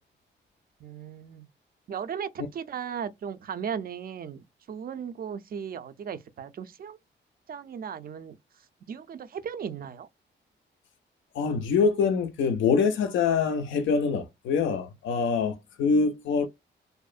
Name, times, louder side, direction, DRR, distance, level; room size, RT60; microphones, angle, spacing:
voice 1, 0.8-1.5 1.9-7.0 7.5-8.4 8.9-10.1, right 7 dB, 50° right, 0.4 m, -36 dB
voice 2, 11.3-16.5, left 5 dB, 90° left, 0.4 m, -25 dB
2.5 x 2.0 x 2.4 m
cardioid pair, 85°, 19 cm